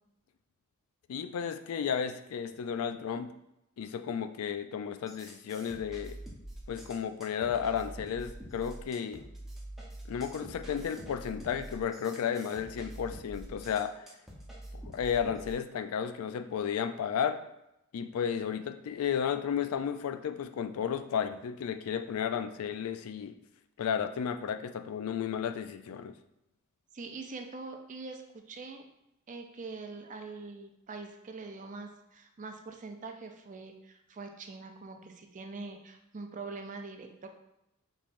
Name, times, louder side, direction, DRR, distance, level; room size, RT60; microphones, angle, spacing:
voice 1, 1.1-3.3 3.8-6.2 6.7-9.2 10.1-14.1 14.7-17.4 17.9-23.3 23.8-26.1, left 7 dB, 75° left, 9 dB, 0.3 m, -33 dB
sound 1, 5.1-15.5, right 1 dB, ahead, 0.7 m, -46 dB
voice 2, 26.9-28.9 29.3-37.3, right 3 dB, 35° right, 5 dB, 0.4 m, -43 dB
5.3 x 3.1 x 2.5 m, 0.84 s
head